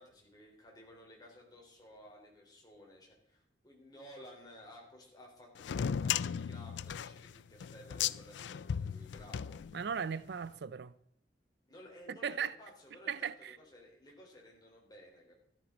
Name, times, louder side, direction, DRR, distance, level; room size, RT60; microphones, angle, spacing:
voice 1, 0.0-9.6 11.7-15.3, left 1 dB, 25° left, 3.9 m, -55 dB
sound 1, 5.6-10.2, left 8 dB, 75° left, 0.4 m, -36 dB
voice 2, 9.7-10.9 12.1-12.5 13.1-13.6, right 7 dB, 65° right, 0.4 m, -37 dB
13.5 x 13.0 x 3.9 m
head